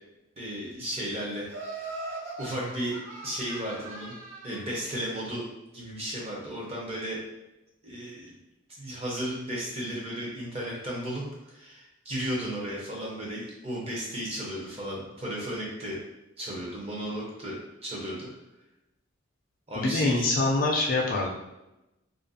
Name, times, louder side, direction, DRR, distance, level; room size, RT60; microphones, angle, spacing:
voice 1, 0.4-1.5 2.4-3.0 3.2-4.2 4.4-5.5 5.7-7.2 7.8-8.4 8.8-16.0 16.4-18.3 19.7-20.3, equal, 25° right, -4 dB, 0.6 m, -34 dB
Laughter, 1.5-4.7, right 2 dB, 65° right, 1.3 m, -40 dB
voice 2, 19.8-21.3, left 2 dB, 40° left, -1 dB, 0.3 m, -25 dB
2.5 x 2.3 x 2.6 m, 0.95 s
head